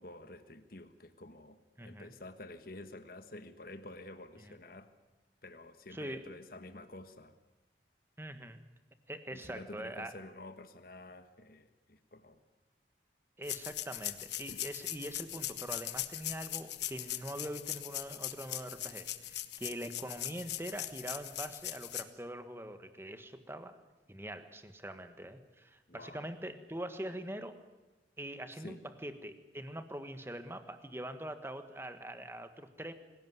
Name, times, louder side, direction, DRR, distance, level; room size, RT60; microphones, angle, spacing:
voice 1, 0.0-4.9 5.4-7.3 9.3-12.4 14.5-14.6 25.9-26.2 28.5-28.8, left 2 dB, 50° left, 9 dB, 1.4 m, -50 dB
voice 2, 1.8-2.1 4.4-4.5 5.9-6.2 8.2-8.6 9.1-10.1 13.4-23.7 24.1-27.5 28.2-32.9, right 1 dB, 15° right, 9 dB, 1.5 m, -43 dB
sound 1, 13.4-22.0, left 13 dB, 70° left, 1.3 m, -40 dB
25.5 x 17.0 x 9.5 m, 1.1 s
head